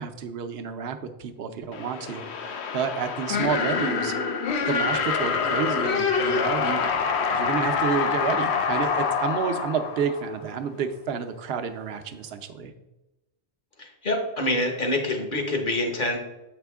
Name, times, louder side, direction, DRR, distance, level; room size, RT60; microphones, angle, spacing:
voice 1, 0.0-4.1 4.7-6.9 7.3-12.7, right 6 dB, 70° right, 7 dB, 0.9 m, -30 dB
sound 1, 1.7-10.6, left 5 dB, 85° left, 0.9 m, -26 dB
voice 2, 13.8-16.2, left 1 dB, 50° left, 3 dB, 1.1 m, -26 dB
7.4 x 5.0 x 3.5 m, 0.99 s
omnidirectional pair, 1.1 m